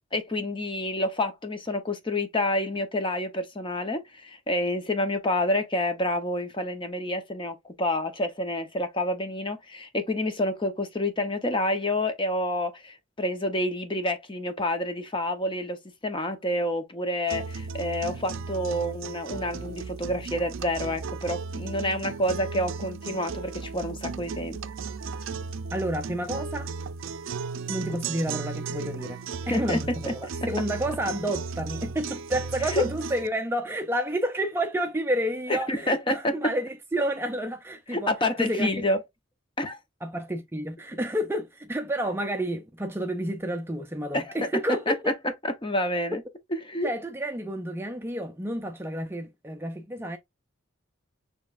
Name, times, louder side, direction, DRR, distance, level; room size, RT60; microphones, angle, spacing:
voice 1, 0.1-24.6 29.5-29.8 30.1-30.2 32.7-32.9 35.5-36.4 37.9-39.0 39.6-39.8 44.1-44.4 44.9-45.0 45.4-46.2 46.5-46.9, left 1 dB, 25° left, 0.8 m, -28 dB
sound 1, 17.3-33.3, right 5 dB, 70° right, 0.4 m, -35 dB
voice 2, 25.7-26.7 27.7-38.1 38.4-38.7 40.0-45.1 46.8-50.2, right 1 dB, 10° right, 0.4 m, -30 dB
6.8 x 3.0 x 2.4 m
head